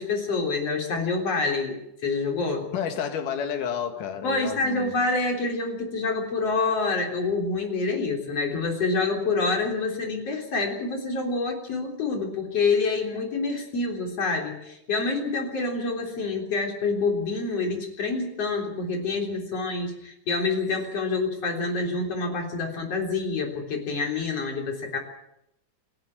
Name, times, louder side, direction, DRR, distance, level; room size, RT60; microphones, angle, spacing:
voice 1, 0.0-1.8 2.0-2.7 4.2-25.0, left 3 dB, 50° left, 4.6 m, -27 dB
voice 2, 2.7-4.9, left 8 dB, 80° left, 3.2 m, -30 dB
27.5 x 11.5 x 8.8 m
omnidirectional pair, 3.6 m